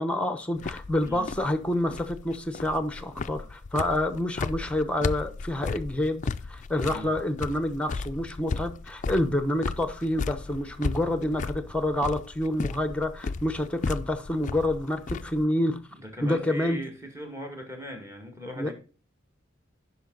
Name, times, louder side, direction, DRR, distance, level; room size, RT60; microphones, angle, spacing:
voice 1, 0.0-6.2 6.5-15.8 16.2-16.8 18.6-18.7, left 1 dB, 5° left, 0.9 m, -28 dB
sound 1, 0.6-15.4, left 4 dB, 40° left, 0.4 m, -35 dB
voice 2, 15.9-18.7, equal, 15° right, 2.1 m, -39 dB
10.0 x 5.9 x 3.9 m
head